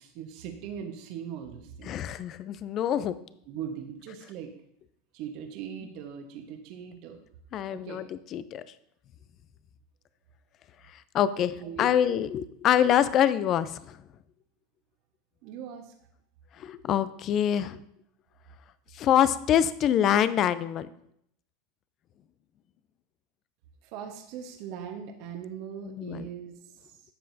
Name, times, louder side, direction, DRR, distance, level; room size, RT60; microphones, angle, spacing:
voice 1, 0.0-2.0 3.5-4.5 5.1-7.4 7.7-8.1 11.6-11.9 15.4-15.9 23.8-27.0, right 8 dB, 60° right, 4 dB, 1.3 m, -40 dB
voice 2, 1.9-3.2 7.5-8.0 8.3-8.6 11.1-14.0 16.6-17.8 18.9-20.9 25.9-26.3, left 10 dB, 45° left, 15 dB, 0.6 m, -25 dB
12.0 x 7.5 x 2.8 m, 0.72 s
hypercardioid pair, 95°, 0 cm